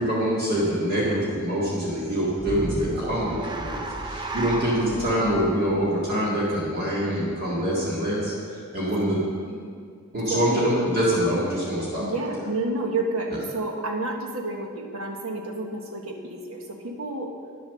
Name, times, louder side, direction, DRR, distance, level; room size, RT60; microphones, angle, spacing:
voice 1, 0.0-8.3 8.7-9.2 10.1-12.0 13.3-13.4, equal, 45° right, -8 dB, 2.0 m, -25 dB
sound 1, 2.4-6.7, right 1 dB, 20° right, 0.7 m, -33 dB
voice 2, 12.0-17.3, right 2 dB, 75° right, 1 dB, 1.4 m, -30 dB
10.0 x 7.3 x 6.5 m, 2.1 s
head